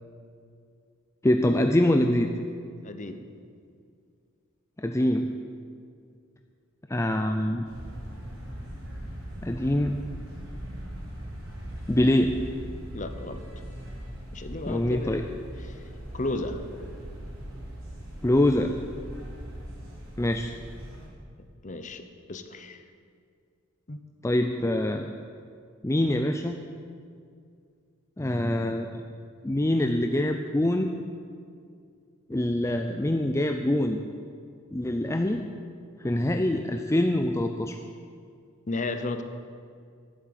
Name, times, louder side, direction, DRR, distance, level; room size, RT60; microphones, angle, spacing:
voice 1, 1.2-2.3 4.8-5.4 6.9-7.7 9.4-10.0 11.9-12.4 14.7-15.2 18.2-18.8 20.2-20.5 24.2-25.1 25.8-26.6 28.2-29.0 29.4-30.9 32.3-34.0 34.7-35.5 36.0-37.8, left 1 dB, 15° left, 4 dB, 0.4 m, -24 dB
voice 2, 2.8-3.3 12.9-13.4 14.3-15.3 15.7-15.8 16.1-16.6 21.6-22.0 22.3-22.8 23.9-24.2 38.7-39.2, left 2 dB, 35° left, 9 dB, 0.8 m, -33 dB
sound 1, 7.6-21.1, equal, 80° right, 4.1 m, -40 dB
11.5 x 8.8 x 8.7 m, 2.3 s
head